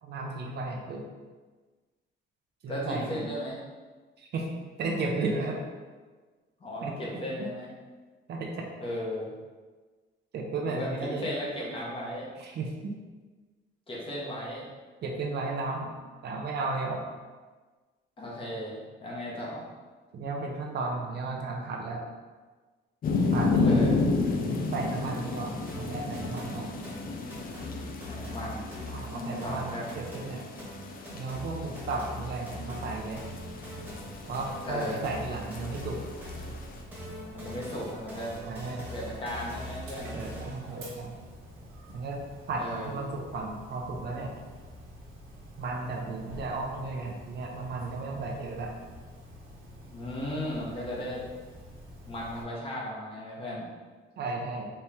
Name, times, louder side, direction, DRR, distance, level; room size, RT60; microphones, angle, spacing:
voice 1, 0.0-1.0 2.6-3.2 4.2-4.5 4.8-5.6 6.8-7.0 8.3-8.7 10.3-11.3 12.4-12.9 15.0-15.9 16.2-17.0 20.1-22.0 23.3-23.8 24.5-26.7 28.9-30.4 31.1-33.3 34.3-36.0 38.4-38.9 40.1-41.2 41.9-42.2 42.5-44.3 45.6-48.7 54.2-54.7, right 3 dB, 55° right, 0 dB, 0.6 m, -34 dB
voice 2, 2.7-3.6 6.6-7.7 8.8-9.3 10.6-12.3 13.9-14.7 18.2-19.6 23.6-24.0 28.1-28.7 29.1-29.9 34.6-35.0 37.3-38.3 38.9-40.2 42.5-42.9 49.8-51.2 52.0-53.7, equal, 25° left, -5 dB, 0.9 m, -36 dB
sound 1, 23.0-36.8, left 3 dB, 45° left, 0.4 m, -32 dB
sound 2, 25.7-40.7, equal, 10° right, 1.2 m, -42 dB
Dog, 33.0-52.4, equal, 90° right, 1.2 m, -48 dB
4.3 x 2.9 x 3.5 m, 1.4 s
cardioid pair, 175°, 21 cm